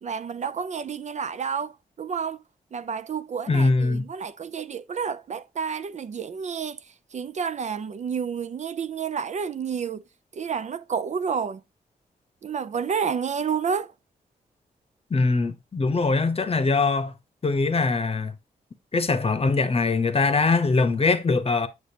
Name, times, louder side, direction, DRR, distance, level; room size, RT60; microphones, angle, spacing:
voice 1, 0.0-2.4 2.7-6.8 7.1-10.0 10.3-11.6 12.4-13.9, right 6 dB, 45° right, 0.4 m, -30 dB
voice 2, 3.5-4.1 15.1-17.1 17.4-18.3 18.9-21.7, left 3 dB, 35° left, 0.8 m, -22 dB
6.6 x 6.5 x 2.8 m
cardioid pair, 55°, 16 cm